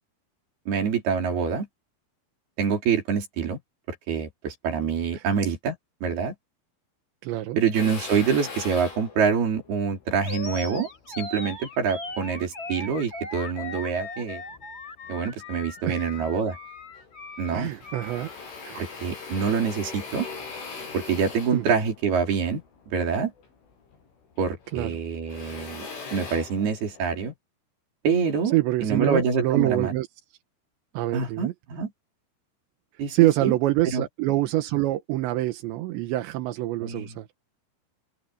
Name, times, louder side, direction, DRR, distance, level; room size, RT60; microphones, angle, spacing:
voice 1, 0.7-1.7 2.6-3.6 4.1-5.8 6.0-6.3 7.6-10.9 11.2-14.4 15.1-16.6 17.4-17.7 18.8-20.3 20.9-23.3 24.4-27.3 28.0-28.5 28.8-29.9 31.1-31.9 33.0-33.5 33.8-34.0 36.8-37.1, right 6 dB, 55° right, 6.1 m, -26 dB
voice 2, 7.2-7.6 15.9-16.1 17.5-18.3 18.6-18.8 21.5-21.8 24.7-24.9 28.5-30.1 30.9-31.5 33.1-37.3, right 16 dB, 75° right, 3.1 m, -25 dB
Drill, 7.7-12.3 12.8-14.0 14.5-15.4 15.8-15.9 16.1-17.1 17.4-24.1 24.4-27.2, left 4 dB, 75° left, 9.4 m, -41 dB
Animal, 10.2-18.4, left 3 dB, 20° left, 5.6 m, -39 dB
open air
omnidirectional pair, 5.7 m